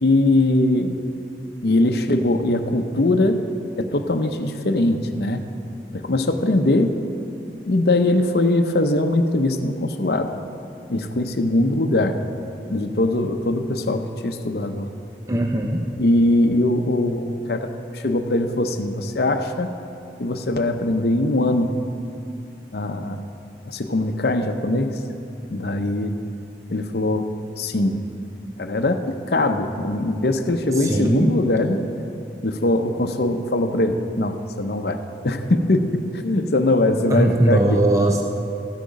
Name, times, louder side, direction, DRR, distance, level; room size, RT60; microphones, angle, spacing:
voice 1, 0.0-1.0 1.6-3.4 3.8-5.5 5.9-7.0 7.7-10.3 10.9-12.2 12.7-14.9 16.0-19.7 20.2-21.8 22.7-23.2 23.7-25.0 25.5-26.1 26.7-28.0 28.6-31.9 32.4-37.8, left 2 dB, 60° left, 6 dB, 0.7 m, -21 dB
voice 2, 15.3-15.9 30.8-31.4 37.1-38.2, right 1 dB, 15° right, 2 dB, 0.6 m, -19 dB
14.0 x 8.6 x 5.3 m, 2.7 s
head